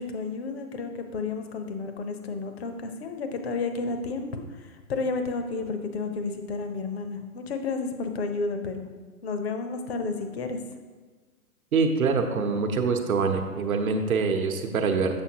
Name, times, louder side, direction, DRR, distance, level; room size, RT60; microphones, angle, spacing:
voice 1, 0.0-8.9 9.2-10.6, left 4 dB, 45° left, 6 dB, 0.7 m, -31 dB
voice 2, 11.7-15.2, right 4 dB, 65° right, 5 dB, 1.0 m, -25 dB
7.0 x 6.8 x 2.8 m, 1.4 s
hypercardioid pair, 135°, 45 cm